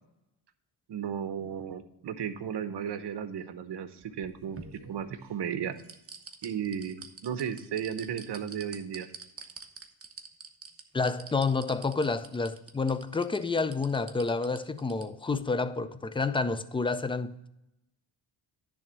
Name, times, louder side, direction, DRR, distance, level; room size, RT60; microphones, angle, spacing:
voice 1, 0.9-5.8 6.4-9.1, right 8 dB, 60° right, 0.9 m, -35 dB
sound 1, 4.0-5.3 5.8-15.0 15.4-15.5, right 5 dB, 30° right, 1.0 m, -46 dB
voice 2, 10.9-17.5, left 4 dB, 10° left, 0.4 m, -29 dB
10.5 x 3.5 x 7.4 m
cardioid pair, 90°, 45 cm